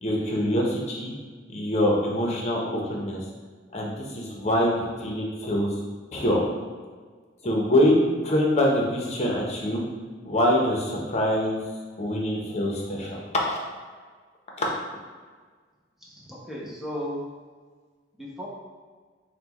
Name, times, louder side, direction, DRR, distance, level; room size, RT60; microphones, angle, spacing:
voice 1, 0.0-1.1 1.5-3.2 3.7-5.7 6.1-6.4 7.4-9.8 10.2-11.6 12.0-13.2 13.4-13.6 14.6-14.7, left 1 dB, 35° left, -2 dB, 0.8 m, -24 dB
voice 2, 16.0-17.2 18.1-18.5, equal, ahead, -6 dB, 0.8 m, -35 dB
5.8 x 2.3 x 2.9 m, 1.5 s
head